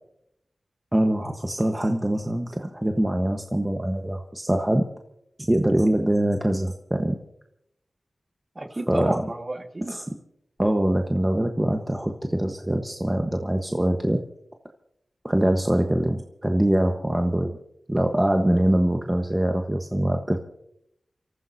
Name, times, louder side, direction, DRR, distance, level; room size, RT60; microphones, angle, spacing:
voice 1, 0.9-4.8 5.5-7.1 8.9-9.2 9.9-10.0 10.6-14.2 15.2-17.6 17.9-20.4, right 1 dB, 20° right, 4 dB, 1.3 m, -23 dB
voice 2, 8.6-10.0, right 2 dB, 40° right, 4 dB, 1.9 m, -31 dB
29.0 x 14.0 x 2.8 m, 0.80 s
cardioid pair, 45°, 0 cm